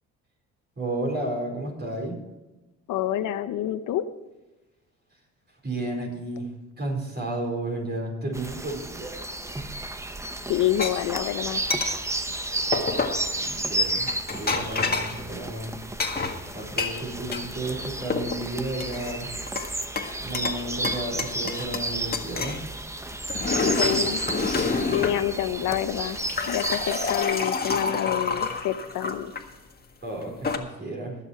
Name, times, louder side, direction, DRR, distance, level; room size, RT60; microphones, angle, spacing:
voice 1, 0.8-2.2 5.6-6.5 6.8-9.1 9.5-9.8 13.4-14.1 14.4-15.7 16.5-19.3 20.2-22.6 25.0-25.1 30.0-31.2, right 2 dB, 35° right, 0 dB, 4.5 m, -32 dB
voice 2, 2.9-4.1 10.5-11.6 23.6-24.2 24.9-26.2 26.5-29.3, left 12 dB, 85° left, 11 dB, 0.8 m, -27 dB
sound 1, 8.3-27.2, right 1 dB, 10° right, 0.9 m, -32 dB
sound 2, 10.8-10.9 11.7-11.9 12.7-13.2 14.0-15.2 16.0-17.5 17.8-18.4 18.8-19.7 20.0-20.6 20.8-21.9 22.1-22.6 23.1-25.2 26.0-29.4 30.2-30.6, left 4 dB, 30° left, 1.7 m, -28 dB
20.0 x 7.2 x 4.5 m, 1.1 s
cardioid pair, 90°, 30 cm